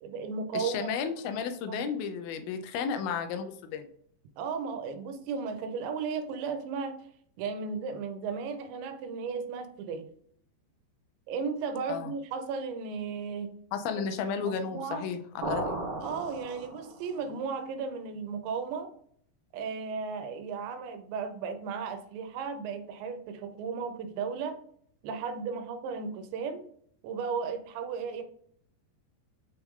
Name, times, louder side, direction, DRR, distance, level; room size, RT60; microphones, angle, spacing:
voice 1, 0.0-0.9 1.7-1.8 4.4-7.1 7.4-10.1 11.3-13.5 14.4-15.1 16.0-18.9 19.5-24.6 25.0-26.7 27.0-28.2, right 5 dB, 80° right, 8 dB, 3.1 m, -35 dB
voice 2, 0.5-3.9 11.9-12.1 13.7-15.8, left 6 dB, 75° left, 8 dB, 2.2 m, -33 dB
sound 1, 15.4-17.1, right 2 dB, 55° right, 3.0 m, -35 dB
9.2 x 4.6 x 3.7 m, 0.64 s
omnidirectional pair, 5.2 m